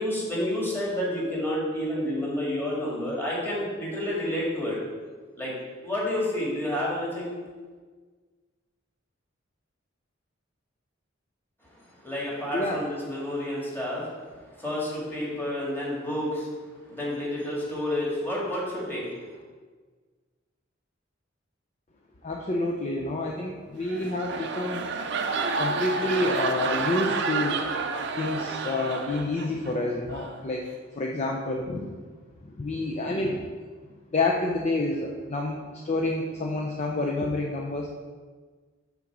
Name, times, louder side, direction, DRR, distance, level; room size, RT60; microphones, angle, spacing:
voice 1, 0.0-4.8 5.4-5.5 5.8-7.3 12.0-14.1 14.6-16.5 16.9-19.1, left 1 dB, 10° left, -5 dB, 1.9 m, -29 dB
voice 2, 12.5-12.9 22.2-24.8 25.6-27.6 28.2-32.0 32.4-33.4 34.1-37.9, left 2 dB, 35° left, 0 dB, 0.5 m, -28 dB
sound 1, 23.8-29.7 30.1-30.4, right 4 dB, 60° right, 0.5 m, -30 dB
7.1 x 3.7 x 6.0 m, 1.5 s
head